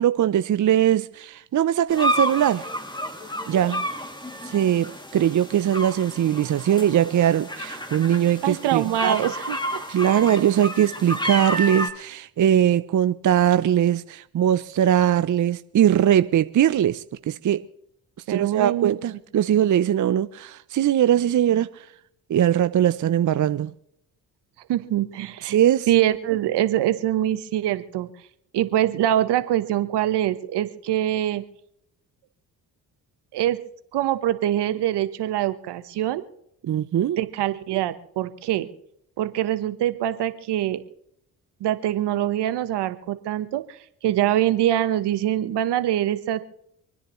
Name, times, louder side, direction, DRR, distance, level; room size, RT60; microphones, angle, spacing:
voice 1, 0.0-2.7 3.5-3.9 4.4-9.3 9.9-17.6 18.3-21.9 22.3-23.7 25.4-25.9 36.6-37.2, right 10 dB, 45° right, 0.7 m, -21 dB
sound 1, 1.9-11.9, equal, 10° left, 2.6 m, -30 dB
voice 2, 8.4-9.8 18.3-19.0 24.7-25.6 25.9-28.1 28.5-31.4 33.3-33.6 33.9-36.2 37.2-38.7 39.2-40.8 41.6-43.8 44.0-46.4, right 12 dB, 70° right, 1.3 m, -24 dB
26.5 x 10.0 x 3.2 m
hypercardioid pair, 50°, 42 cm